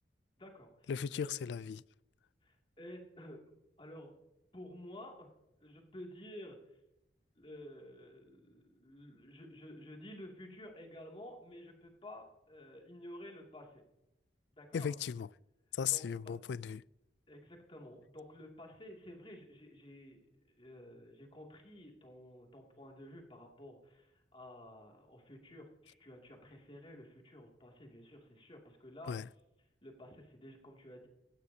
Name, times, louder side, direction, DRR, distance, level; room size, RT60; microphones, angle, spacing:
voice 1, 0.4-1.3 2.4-3.4 3.8-4.1 4.5-5.3 5.6-6.6 7.4-13.8 14.6-14.9 15.9-16.4 17.3-29.1 29.8-31.1, left 1 dB, 30° left, 2.5 m, -52 dB
voice 2, 0.9-1.8 14.7-15.3 15.7-16.8 29.1-29.2, left 8 dB, 75° left, 0.3 m, -36 dB
16.5 x 15.5 x 2.8 m
head